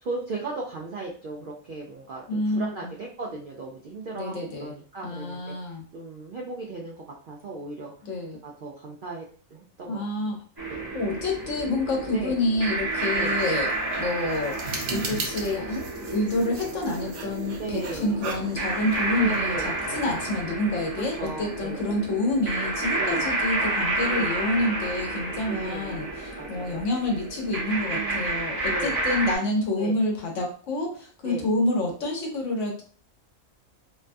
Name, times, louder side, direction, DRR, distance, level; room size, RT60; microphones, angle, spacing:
voice 1, 0.0-4.3 4.6-5.5 5.9-7.9 8.4-9.3 9.5-10.3 10.7-10.9 12.1-12.4 13.1-13.4 15.4-15.6 17.6-18.2 19.2-20.1 21.0-21.9 23.0-23.3 24.0-24.3 25.4-26.0 26.4-26.8 27.9-28.3 28.6-29.0 29.8-30.0 31.2-31.5, right 3 dB, 85° right, -2 dB, 0.4 m, -36 dB
voice 2, 2.3-2.9 4.1-4.8 5.0-5.8 8.0-8.4 9.9-10.4 10.9-32.8, left 2 dB, 65° left, 0 dB, 1.0 m, -28 dB
sound 1, 10.6-29.4, right 2 dB, 25° right, 0.5 m, -30 dB
sound 2, 12.9-20.4, right 3 dB, 65° right, 0.9 m, -38 dB
2.6 x 2.3 x 2.5 m, 0.43 s
omnidirectional pair, 1.4 m